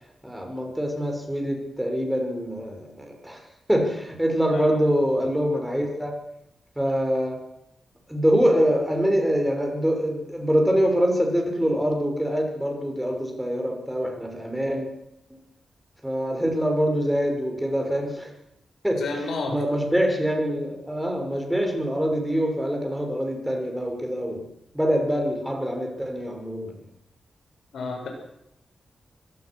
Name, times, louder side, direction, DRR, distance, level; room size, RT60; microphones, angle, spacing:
voice 1, 0.2-6.2 6.8-7.4 8.1-14.9 15.3-15.4 16.0-18.3 18.8-24.5 24.7-26.8, equal, 5° right, 2 dB, 6.3 m, -25 dB
voice 2, 19.0-19.6 27.7-28.1, left 3 dB, 85° left, 2 dB, 6.7 m, -30 dB
25.5 x 17.5 x 6.4 m, 0.82 s
wide cardioid pair, 105°, 0 cm